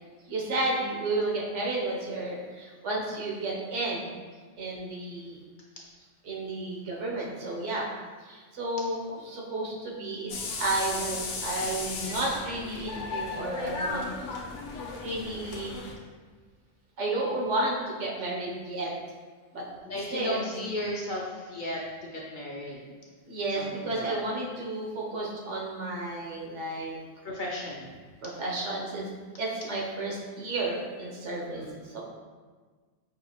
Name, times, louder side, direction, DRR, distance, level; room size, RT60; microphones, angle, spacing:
voice 1, 0.3-4.1 4.6-5.4 6.2-7.8 8.2-10.3 10.6-14.0 15.0-15.7 17.0-18.9 19.5-19.6 20.1-20.5 23.3-27.0 28.2-29.1 29.4-32.0, right 2 dB, 85° right, -3 dB, 1.2 m, -32 dB
sound 1, 10.3-15.9, left 3 dB, 85° left, 0.9 m, -35 dB
voice 2, 19.9-22.9 23.6-24.2 27.2-27.9 31.4-31.8, left 1 dB, 55° left, -3 dB, 0.6 m, -35 dB
5.5 x 2.4 x 2.9 m, 1.5 s
omnidirectional pair, 1.2 m